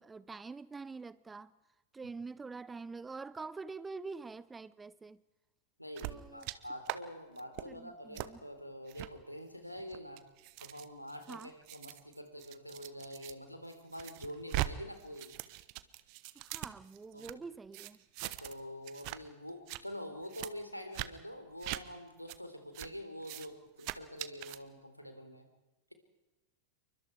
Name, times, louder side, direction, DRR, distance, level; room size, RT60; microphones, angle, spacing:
voice 1, 0.0-1.5 1.9-5.2 6.0-6.5 7.7-8.4 11.3-11.5 16.3-18.0, right 4 dB, 15° right, 0.7 m, -46 dB
voice 2, 5.8-10.2 10.6-15.4 17.1-17.4 18.2-25.5, equal, 90° left, 3.6 m, -46 dB
sound 1, 6.0-6.6 6.8-7.0 7.4-7.6 8.1-8.3 8.9-9.1 9.8-13.3 13.7-14.7 15.0-17.3 17.7-18.6 18.8-19.2 19.5-19.8 20.3-20.5 20.9-21.1 21.6-21.8 22.3-22.4 22.7-22.9 23.2-23.5 23.8-24.6, right 20 dB, 45° right, 1.1 m, -41 dB
28.5 x 24.0 x 4.7 m
figure-of-eight pair, 90°, 0 cm